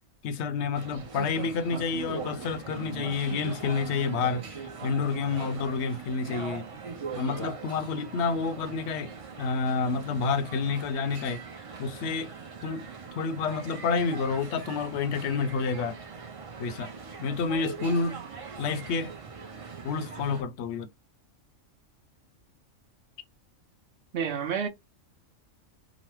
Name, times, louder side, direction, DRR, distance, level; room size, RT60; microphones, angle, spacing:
voice 1, 0.2-6.8 7.1-11.4 11.8-12.3 12.6-12.9 13.1-16.0 16.6-16.9 17.2-18.2 18.6-19.2 19.8-20.9, left 5 dB, 65° left, 0.8 m, -29 dB
sound 1, 0.7-20.4, right 5 dB, 45° right, 0.4 m, -41 dB
voice 2, 24.1-24.7, right 7 dB, 60° right, 1.0 m, -30 dB
3.0 x 2.0 x 3.1 m
omnidirectional pair, 1.4 m